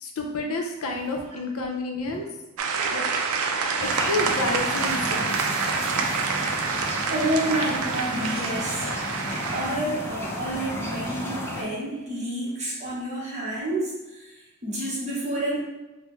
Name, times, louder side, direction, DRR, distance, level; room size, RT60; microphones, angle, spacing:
voice 1, 0.0-2.3 2.9-3.0 3.8-5.4, left 2 dB, 80° left, 1 dB, 0.5 m, -29 dB
sound 1, 2.6-9.8, right 5 dB, 80° right, 0.4 m, -27 dB
sound 2, 3.8-11.6, equal, 10° left, 0.4 m, -33 dB
voice 2, 7.1-9.1 9.5-14.3 14.6-15.6, right 1 dB, 35° right, -6 dB, 0.9 m, -29 dB
3.4 x 2.1 x 3.0 m, 1.1 s
head